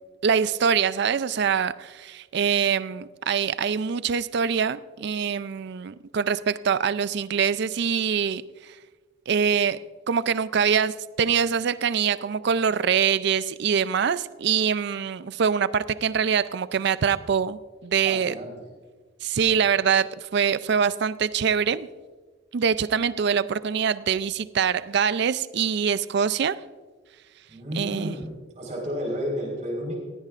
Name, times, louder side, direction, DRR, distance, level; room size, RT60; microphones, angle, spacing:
voice 1, 0.2-8.7 9.3-9.8 10.1-18.4 19.2-21.9 22.5-26.6 27.7-28.2, right 7 dB, 55° right, 16 dB, 0.4 m, -24 dB
voice 2, 18.0-18.7 27.5-29.9, equal, 35° right, -1 dB, 4.4 m, -32 dB
18.5 x 16.0 x 2.5 m, 1.4 s
head